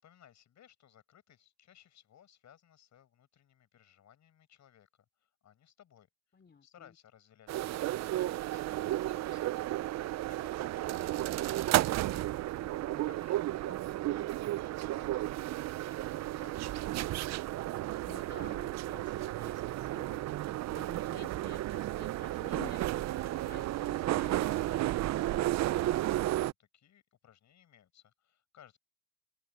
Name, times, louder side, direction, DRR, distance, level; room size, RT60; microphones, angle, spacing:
voice 1, 0.0-4.9 5.2-6.1 6.6-12.6 13.1-16.7 25.8-28.8, left 10 dB, 65° left, 7.5 m, -61 dB
voice 2, 6.3-6.9 12.6-13.0 17.0-17.4 18.1-24.8, left 6 dB, 35° left, 3.2 m, -53 dB
sound 1, 7.5-26.5, right 15 dB, 60° right, 0.4 m, -33 dB
open air
cardioid pair, 90°, 30 cm